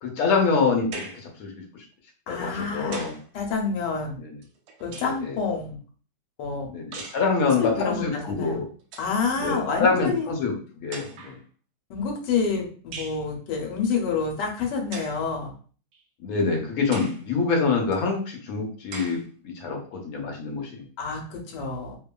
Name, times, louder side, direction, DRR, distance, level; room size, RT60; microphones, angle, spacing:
voice 1, 0.0-1.6 2.3-3.1 4.2-4.3 5.0-5.4 6.7-8.6 9.4-10.5 10.8-11.4 16.2-19.2 19.4-20.8, left 4 dB, 65° left, 1 dB, 1.0 m, -25 dB
sound 1, 0.9-1.3 2.4-3.3 4.4-5.3 6.9-7.3 8.4-8.5 8.8-9.2 10.2-10.3 10.9-11.4 12.9-13.2 14.9-15.2 15.9-16.0 16.9-17.3 17.9-18.0 18.9-19.2, right 4 dB, 85° right, 1.2 m, -40 dB
voice 2, 2.3-4.2 4.8-5.8 6.4-6.7 7.4-8.6 9.0-10.3 11.9-15.5 21.0-22.0, left 5 dB, 90° left, 1 dB, 1.3 m, -28 dB
2.8 x 2.3 x 2.2 m, 0.41 s
omnidirectional pair, 1.8 m